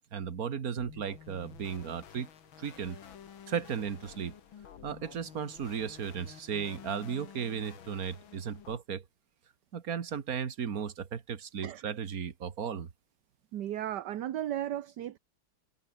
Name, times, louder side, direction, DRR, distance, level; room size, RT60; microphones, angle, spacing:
voice 1, 0.1-2.3 2.6-3.0 3.5-4.3 4.8-9.0 9.7-12.9, right 7 dB, 45° right, 1.8 m, -35 dB
sound 1, 0.8-8.8, left 8 dB, 65° left, 2.3 m, -51 dB
voice 2, 13.5-15.2, right 12 dB, 60° right, 1.3 m, -35 dB
omnidirectional pair, 2.4 m